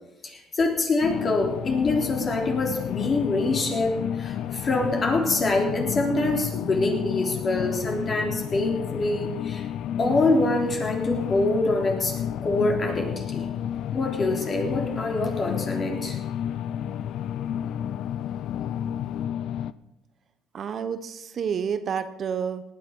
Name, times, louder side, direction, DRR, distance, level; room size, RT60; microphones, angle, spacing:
voice 1, 0.2-9.7 10.0-13.5 13.9-16.2, left 2 dB, 40° left, 2 dB, 3.5 m, -25 dB
sound 1, 1.0-19.7, left 10 dB, 70° left, 0.5 m, -31 dB
voice 2, 20.5-22.6, right 7 dB, 50° right, 10 dB, 0.9 m, -29 dB
18.0 x 10.0 x 5.4 m, 0.91 s
supercardioid pair, 90°, 0 cm